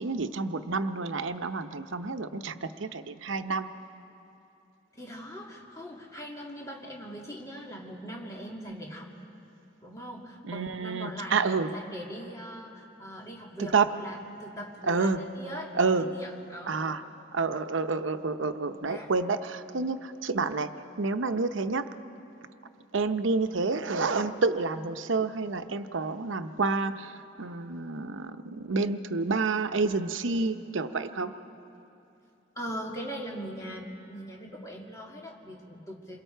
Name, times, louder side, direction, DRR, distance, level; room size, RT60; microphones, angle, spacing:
voice 1, 0.0-3.7 8.7-8.8 10.4-11.7 13.6-13.9 14.9-15.3 15.8-16.1 16.7-17.0 17.3-20.7 21.0-21.9 22.9-31.3, right 4 dB, 80° right, 10 dB, 0.8 m, -29 dB
voice 2, 4.9-9.1 9.8-16.9 18.9-19.1 32.6-36.2, equal, 15° left, -2 dB, 2.4 m, -41 dB
28.5 x 22.0 x 4.5 m, 2.8 s
head